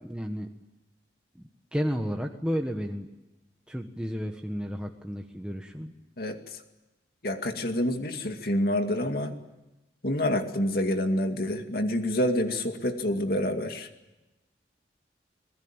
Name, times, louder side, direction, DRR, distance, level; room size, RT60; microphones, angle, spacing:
voice 1, 0.0-0.5 1.3-3.1 3.7-5.9, equal, 5° right, 2 dB, 1.4 m, -32 dB
voice 2, 7.2-9.3 10.0-13.9, left 1 dB, 60° left, 5 dB, 2.4 m, -27 dB
27.0 x 20.0 x 9.0 m, 1.0 s
head